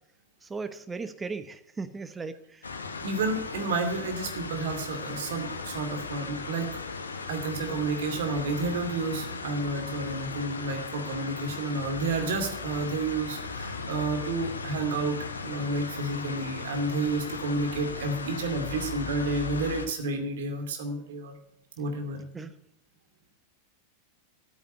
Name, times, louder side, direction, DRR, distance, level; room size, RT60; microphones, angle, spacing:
voice 1, 0.4-2.6 22.3-22.5, right 4 dB, 15° right, 11 dB, 1.0 m, -37 dB
sound 1, 2.6-19.9, left 4 dB, 75° left, 1.2 m, -37 dB
voice 2, 3.0-6.8 7.3-15.2 15.4-21.4 21.8-22.2, right 3 dB, 55° right, 5 dB, 2.5 m, -30 dB
10.5 x 9.1 x 8.1 m, 0.73 s
figure-of-eight pair, 90°, 0 cm